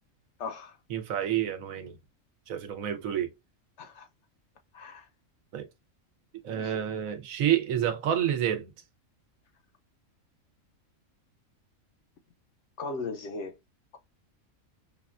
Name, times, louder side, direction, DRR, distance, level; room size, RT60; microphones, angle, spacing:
voice 1, 0.4-0.7 3.8-4.1 4.7-5.0 6.5-6.7 12.8-13.5, left 3 dB, 65° left, 0.8 m, -37 dB
voice 2, 0.9-2.0 2.5-3.3 5.5-5.7 6.4-8.7, right 10 dB, 75° right, 1.1 m, -29 dB
5.4 x 2.3 x 2.4 m
omnidirectional pair, 1.4 m